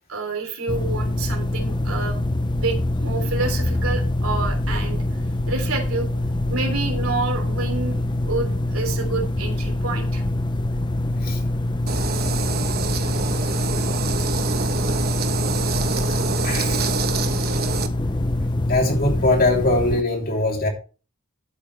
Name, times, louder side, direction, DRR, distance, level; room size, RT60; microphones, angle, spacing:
voice 1, 0.1-2.2 2.5-5.0 5.5-6.1 6.5-10.2, right 3 dB, 90° right, 3.1 m, -28 dB
sound 1, 0.7-20.0, left 1 dB, 20° left, 0.6 m, -24 dB
sound 2, 11.9-17.9, right 5 dB, 50° right, 1.2 m, -27 dB
voice 2, 16.4-16.9 18.7-20.7, left 2 dB, 45° left, 3.1 m, -21 dB
12.0 x 8.5 x 3.3 m
head